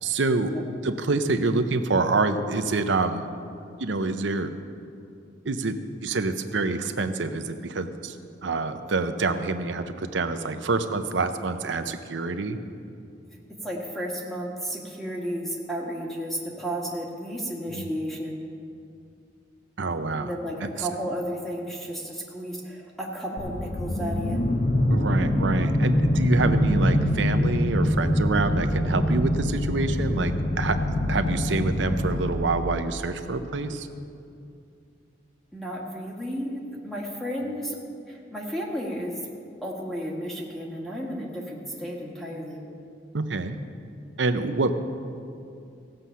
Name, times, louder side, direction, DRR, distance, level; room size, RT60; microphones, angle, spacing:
voice 1, 0.0-3.3 3.8-4.5 5.4-8.2 8.4-12.6 17.7-17.9 19.8-20.3 20.6-20.9 24.9-33.9 43.1-43.6 44.2-44.7, right 3 dB, 80° right, 9 dB, 0.7 m, -27 dB
voice 2, 13.6-18.4 20.2-24.4 35.5-37.8 38.1-39.2 39.6-42.6, equal, ahead, -3 dB, 1.5 m, -33 dB
sound 1, 23.4-32.5, left 1 dB, 40° left, 1.0 m, -24 dB
16.0 x 7.7 x 5.6 m, 2.5 s
head